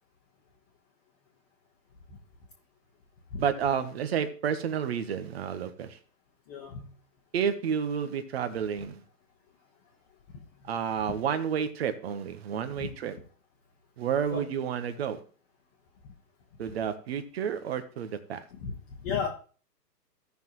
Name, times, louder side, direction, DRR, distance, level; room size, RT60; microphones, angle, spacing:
voice 1, 3.4-6.0 7.3-9.0 10.7-13.2 14.0-15.2 16.6-18.4, right 8 dB, 40° right, 1.2 m, -30 dB
voice 2, 6.5-6.9 12.8-12.9 14.3-14.4 18.5-19.3, left 6 dB, 25° left, 1.2 m, -34 dB
16.0 x 5.9 x 3.1 m
hypercardioid pair, 150°, 49 cm